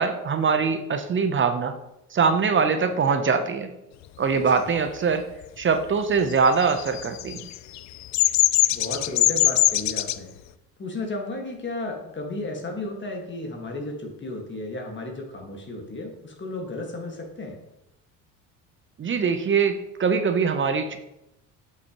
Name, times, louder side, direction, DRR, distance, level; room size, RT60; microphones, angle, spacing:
voice 1, 0.0-1.8 2.1-3.7 4.2-5.2 5.6-7.5 19.0-21.0, right 5 dB, 30° right, 8 dB, 0.7 m, -23 dB
Bird vocalization bird call bird song, 6.5-10.2, left 15 dB, 45° left, 0.4 m, -21 dB
voice 2, 8.7-10.3 10.8-17.6, left 2 dB, 30° left, 2 dB, 1.7 m, -33 dB
7.7 x 5.9 x 3.0 m, 0.89 s
supercardioid pair, 85°, 39 cm